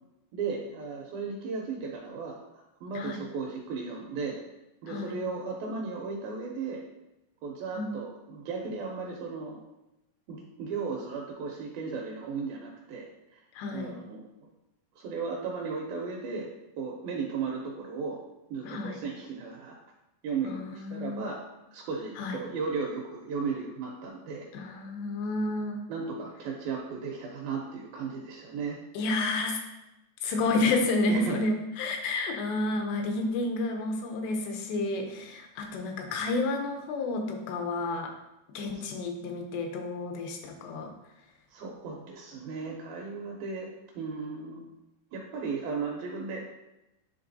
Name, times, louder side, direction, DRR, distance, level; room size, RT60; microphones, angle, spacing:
voice 1, 0.3-2.4 2.8-4.4 4.8-6.8 7.4-9.6 10.3-13.4 13.7-14.3 15.0-16.5 16.8-18.2 18.5-19.8 20.2-21.4 21.7-24.5 25.9-28.8 31.1-31.4 38.7-38.8 41.5-44.7 45.1-46.5, right 4 dB, 80° right, -1 dB, 2.2 m, -35 dB
voice 2, 4.9-5.2 7.8-8.0 13.6-13.9 18.6-19.0 20.4-21.3 22.2-22.4 24.5-25.8 28.9-29.6 30.2-38.1 38.5-40.9, left 2 dB, 90° left, 3 dB, 3.0 m, -30 dB
10.0 x 3.5 x 2.7 m, 0.94 s
omnidirectional pair, 4.8 m